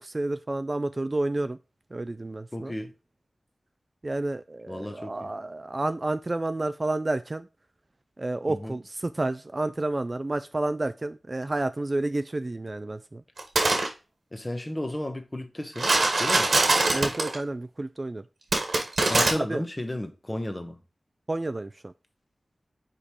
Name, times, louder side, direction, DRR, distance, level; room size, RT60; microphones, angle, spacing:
voice 1, 0.0-1.6 1.9-2.7 4.0-7.5 8.2-13.2 16.9-18.2 19.1-19.6 21.3-21.9, right 2 dB, 35° right, 0.3 m, -30 dB
voice 2, 2.5-2.9 4.7-5.3 8.5-8.8 14.3-15.9 16.2-16.6 19.1-20.8, left 1 dB, 20° left, 1.0 m, -33 dB
sound 1, 13.4-13.9 15.8-17.4 18.5-19.3, right 2 dB, 75° right, 1.5 m, -22 dB
5.1 x 4.4 x 4.8 m
wide cardioid pair, 95°, 0 cm